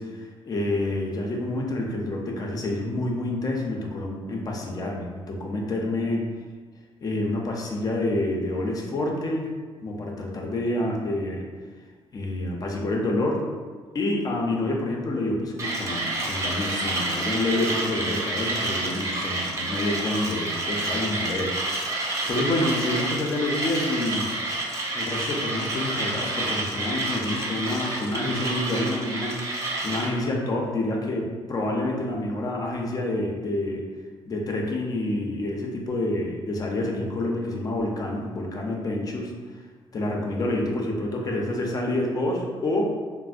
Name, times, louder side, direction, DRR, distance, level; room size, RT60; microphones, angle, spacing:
voice 1, 0.0-6.3 7.0-9.5 9.8-11.4 12.1-13.5 13.9-24.3 24.9-33.8 34.3-39.3 39.9-42.9, left 1 dB, 35° left, -1 dB, 0.5 m, -28 dB
Mechanisms, 15.6-30.1, right 2 dB, 30° right, 0.6 m, -29 dB
4.2 x 2.0 x 2.4 m, 1.5 s
cardioid pair, 125°, 10 cm